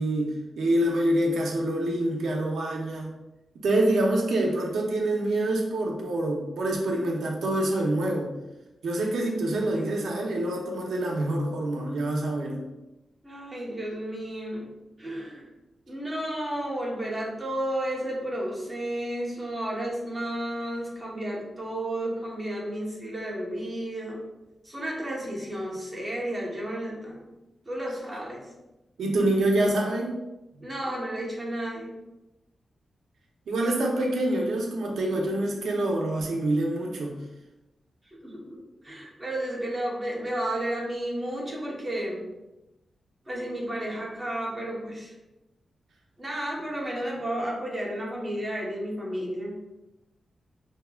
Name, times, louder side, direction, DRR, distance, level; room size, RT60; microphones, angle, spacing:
voice 1, 0.0-3.1 3.6-8.3 8.8-12.6 29.0-30.2 30.5-30.6 33.5-37.2, right 1 dB, 85° right, -1 dB, 0.8 m, -26 dB
voice 2, 13.2-14.7 15.0-15.5 15.9-24.2 24.6-27.3 27.7-28.4 30.6-31.9 38.1-42.2 43.3-45.1 46.2-49.6, right 1 dB, 15° right, -4 dB, 1.0 m, -32 dB
5.7 x 2.9 x 2.3 m, 0.99 s
wide cardioid pair, 160°, 0 cm